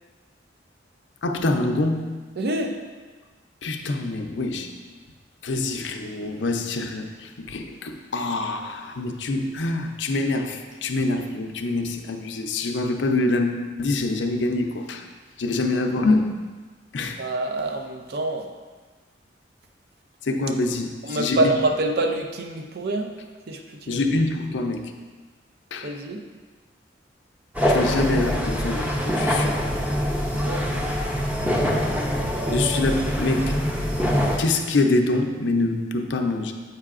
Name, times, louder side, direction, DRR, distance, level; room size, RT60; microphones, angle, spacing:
voice 1, 1.2-2.2 3.6-4.7 5.4-15.1 15.4-16.4 16.9-17.2 20.2-21.5 23.9-24.9 25.7-25.9 27.7-29.6 32.5-33.6 34.4-36.5, left 2 dB, 85° left, 5 dB, 0.5 m, -25 dB
voice 2, 2.4-2.8 17.0-18.5 21.0-23.2 23.5-24.0 25.8-26.2 30.3-31.0, right 2 dB, 60° right, 5 dB, 0.5 m, -26 dB
sound 1, 27.5-34.4, equal, 10° right, 0.5 m, -24 dB
8.0 x 5.5 x 2.4 m, 1.4 s
head